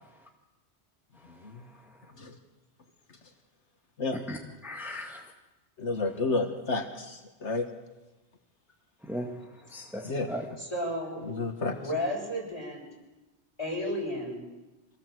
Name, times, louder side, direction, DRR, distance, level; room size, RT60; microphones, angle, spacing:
voice 1, 4.1-5.2 9.0-9.3 9.7-10.5, equal, ahead, 1 dB, 1.7 m, -37 dB
voice 2, 5.8-7.7 10.0-10.3 11.3-11.7, left 3 dB, 80° left, 5 dB, 1.9 m, -30 dB
voice 3, 10.6-11.2 11.6-12.8 13.6-14.4, left 1 dB, 25° left, -1 dB, 7.0 m, -33 dB
25.5 x 18.5 x 7.9 m, 1.1 s
omnidirectional pair, 1.2 m